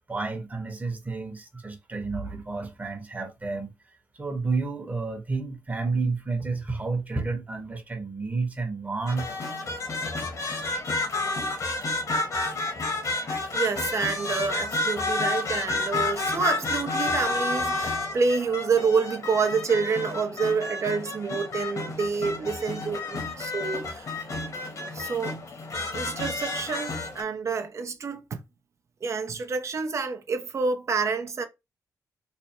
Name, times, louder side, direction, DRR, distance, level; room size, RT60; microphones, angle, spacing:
voice 1, 0.1-3.7 4.1-9.4, right 3 dB, 25° right, 1.1 m, -30 dB
sound 1, 9.1-27.2, left 2 dB, 55° left, 1.4 m, -30 dB
voice 2, 13.5-24.1 24.9-25.4 25.9-28.4 29.0-31.4, right 5 dB, 45° right, 0.8 m, -28 dB
3.4 x 2.2 x 4.3 m
cardioid pair, 85°, 7 cm